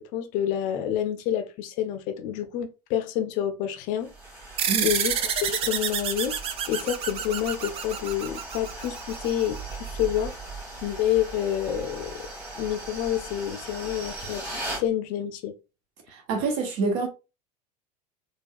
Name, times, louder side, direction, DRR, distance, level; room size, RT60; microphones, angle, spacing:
voice 1, 0.0-4.1 4.8-6.4 6.7-10.4 10.8-12.3 12.5-15.5, left 10 dB, 45° left, 0.6 m, -28 dB
sound 1, 4.0-14.9, right 2 dB, 10° right, 1.8 m, -39 dB
sound 2, 4.6-9.4, right 8 dB, 30° right, 0.4 m, -29 dB
voice 2, 16.1-17.1, right 4 dB, 50° right, 1.1 m, -26 dB
4.4 x 2.3 x 2.4 m
figure-of-eight pair, 80°, 20 cm